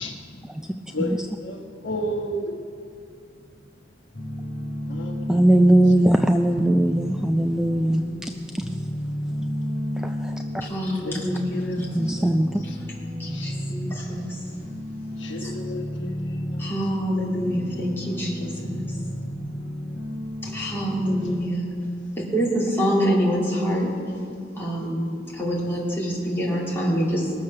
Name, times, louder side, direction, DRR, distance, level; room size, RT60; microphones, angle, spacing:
voice 1, 0.9-2.6 4.9-5.4 11.0-12.2 13.3-13.5 15.2-16.2, equal, 80° left, 1 dB, 1.3 m, -32 dB
sound 1, 4.1-21.4, equal, 50° left, 4.3 m, -33 dB
voice 2, 5.3-8.0 8.6-8.7 10.0-10.4 11.9-12.6, right 1 dB, 5° right, 5 dB, 0.3 m, -20 dB
voice 3, 10.6-11.8 13.2-14.5 15.4-15.5 16.6-19.0 20.4-21.7 22.1-23.9 24.5-25.0 25.3-27.3, equal, 10° left, -6 dB, 3.0 m, -26 dB
20.0 x 7.1 x 6.5 m, 2.4 s
head